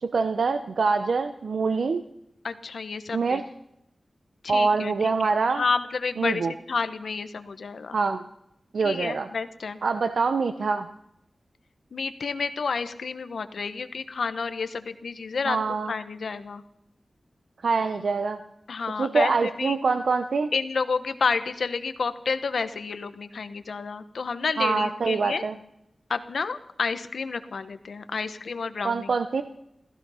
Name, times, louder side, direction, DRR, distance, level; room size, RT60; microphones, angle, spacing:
voice 1, 0.0-2.0 3.1-3.4 4.5-5.6 6.2-6.5 7.9-8.2 8.7-9.3 9.8-10.9 15.5-15.9 17.6-18.4 19.0-20.5 24.6-25.5 28.8-29.4, right 4 dB, 85° right, 9 dB, 0.7 m, -25 dB
voice 2, 2.4-3.4 4.4-8.0 8.8-9.8 11.9-15.6 15.9-16.6 18.7-19.8 20.5-25.4 26.1-29.1, left 5 dB, 85° left, 11 dB, 1.0 m, -30 dB
15.5 x 15.5 x 5.7 m, 0.80 s
wide cardioid pair, 90°, 0 cm